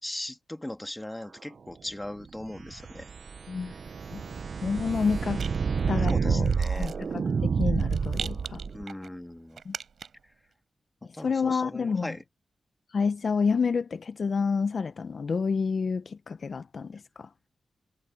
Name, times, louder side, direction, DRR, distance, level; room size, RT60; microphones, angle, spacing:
voice 1, 0.0-3.1 3.6-3.8 6.1-6.9 8.7-9.6 11.0-12.2, left 1 dB, 10° left, 1.8 m, -39 dB
sound 1, 2.5-8.8, right 5 dB, 65° right, 0.5 m, -29 dB
Rattle, 4.2-10.3, right 6 dB, 80° right, 4.3 m, -44 dB
voice 2, 4.6-5.5 5.9-8.6 9.6-9.8 11.0-12.1 12.9-17.3, left 5 dB, 60° left, 0.8 m, -29 dB
wide cardioid pair, 85°, 0 cm